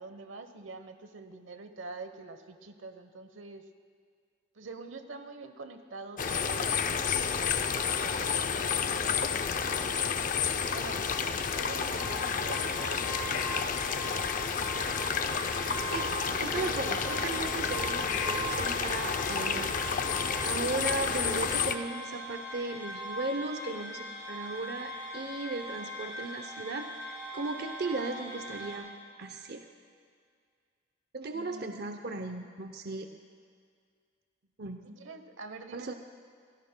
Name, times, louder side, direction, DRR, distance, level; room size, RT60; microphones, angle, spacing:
voice 1, 0.0-3.6 4.5-10.1 10.7-11.0 11.5-14.1 31.3-31.9 34.8-35.9, right 3 dB, 85° right, 8 dB, 0.9 m, -46 dB
sound 1, 6.2-21.8, left 6 dB, 45° left, 0.5 m, -30 dB
sound 2, 12.0-28.8, right 1 dB, 15° right, 4.5 m, -41 dB
voice 2, 16.4-19.8 20.1-28.9 29.2-29.7 31.1-33.1 34.6-34.9 35.7-35.9, right 3 dB, 55° right, 6 dB, 0.6 m, -36 dB
25.0 x 17.0 x 2.2 m, 2.1 s
head